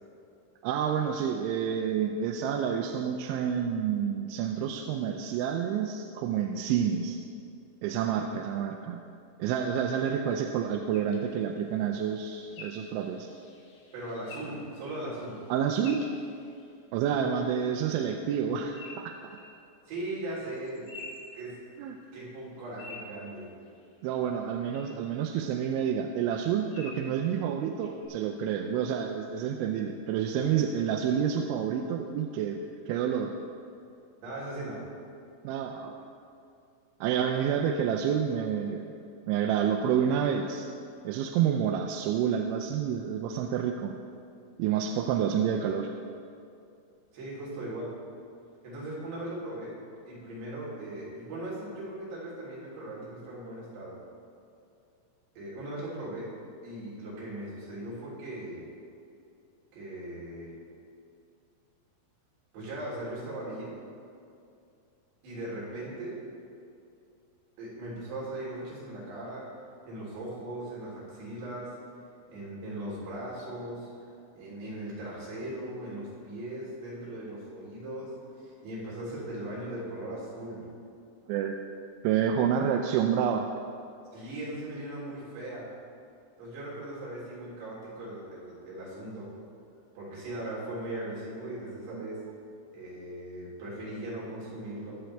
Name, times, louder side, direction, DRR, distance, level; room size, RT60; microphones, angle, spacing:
voice 1, 0.6-7.2 7.8-9.0 9.4-13.3 15.5-16.1 16.9-19.2 21.8-22.0 24.0-33.4 35.4-36.0 37.0-38.9 39.3-40.7 41.0-43.9 44.6-45.9 81.3-81.6 82.0-83.5 91.9-92.0, right 8 dB, 85° right, 4 dB, 2.9 m, -29 dB
sound 1, 10.9-16.8 18.7-19.5 20.5-22.0 22.3-24.0 24.7-24.8 25.3-25.4 26.7-27.1 27.8-28.1, left 3 dB, 75° left, 4.3 m, -49 dB
voice 2, 13.9-15.4 19.9-20.9 21.3-21.6 22.1-23.5 34.2-34.9 47.1-48.0 48.6-49.8 50.1-54.0 55.4-56.4 56.6-58.7 59.7-60.6 62.5-63.8 65.2-66.2 67.6-69.5 69.9-71.8 72.3-74.1 74.3-78.2 78.4-80.7 84.1-85.7 86.4-89.3 90.0-92.3 92.7-95.0, right 1 dB, 65° right, -7 dB, 5.5 m, -39 dB
22.0 x 8.1 x 3.4 m, 2.5 s
omnidirectional pair, 5.5 m